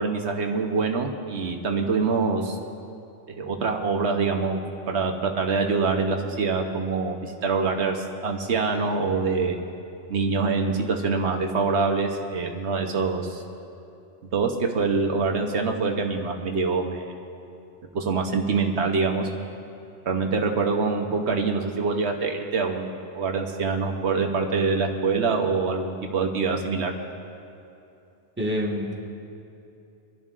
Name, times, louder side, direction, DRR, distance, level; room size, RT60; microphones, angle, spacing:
voice 1, 0.0-2.6 3.4-9.6 10.1-13.4 14.3-17.0 17.9-19.3 20.1-26.9, right 4 dB, 75° right, 3 dB, 1.1 m, -25 dB
voice 2, 28.4-28.9, equal, 10° right, -2 dB, 1.3 m, -26 dB
26.0 x 11.0 x 2.5 m, 2.7 s
omnidirectional pair, 1.2 m